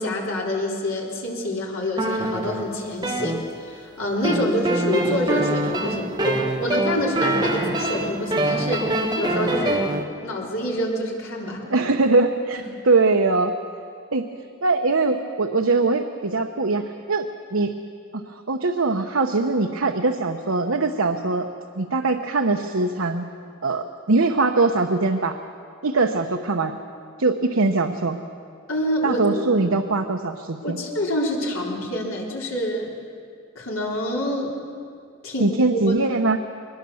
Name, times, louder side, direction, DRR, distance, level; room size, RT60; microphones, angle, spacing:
voice 1, 0.0-9.9 10.2-11.7 28.7-29.3 30.6-32.9 33.6-34.5 35.2-35.9, equal, 90° left, -2 dB, 4.1 m, -27 dB
sound 1, 2.0-3.8 4.2-10.0, right 1 dB, 20° right, 1.3 m, -24 dB
voice 2, 11.7-13.5 14.1-14.2 14.6-17.7 18.1-21.5 21.8-23.3 23.6-25.4 25.8-26.7 27.2-28.2 29.0-30.8 35.4-36.4, right 3 dB, 85° right, 4 dB, 0.9 m, -22 dB
22.0 x 21.0 x 7.1 m, 2.3 s
head